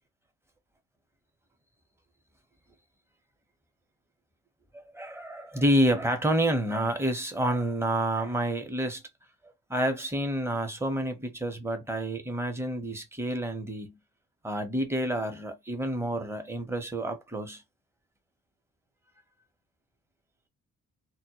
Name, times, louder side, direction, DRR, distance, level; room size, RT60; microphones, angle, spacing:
voice 1, 4.7-9.0 9.7-14.0 14.4-17.6, right 1 dB, 10° right, 0.8 m, -29 dB
2.1 x 2.1 x 2.8 m
cardioid pair, 90°, 30 cm